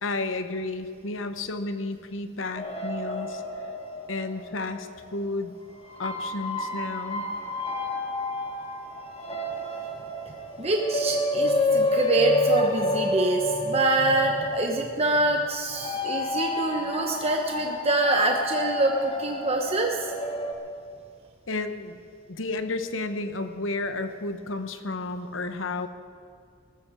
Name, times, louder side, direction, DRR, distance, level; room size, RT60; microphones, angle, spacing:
voice 1, 0.0-3.4 4.1-5.5 6.0-7.3 21.5-22.0 22.3-25.9, left 2 dB, 75° left, 8 dB, 1.1 m, -32 dB
sound 1, 2.6-5.1 5.8-20.5, left 1 dB, 30° left, 1.7 m, -29 dB
voice 2, 10.6-20.1, right 2 dB, 30° right, 2 dB, 0.9 m, -25 dB
19.0 x 14.0 x 4.9 m, 2.2 s
head